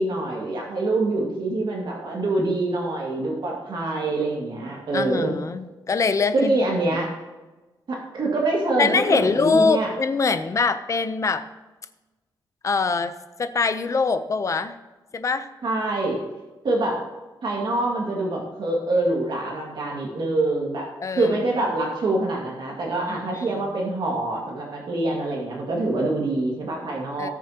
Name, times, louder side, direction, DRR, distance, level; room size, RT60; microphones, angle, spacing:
voice 1, 0.0-5.3 6.3-7.1 7.9-9.9 15.6-16.2 16.6-17.0 17.4-20.9 21.2-27.3, right 2 dB, 60° right, -2 dB, 2.0 m, -25 dB
voice 2, 4.9-6.5 6.9-7.0 8.8-11.5 12.6-13.1 13.4-14.8 15.1-15.5 21.0-21.3 23.1-23.6 27.2-27.3, left 4 dB, 40° left, 11 dB, 0.6 m, -23 dB
18.0 x 7.0 x 2.9 m, 1.1 s
wide cardioid pair, 150°, 9 cm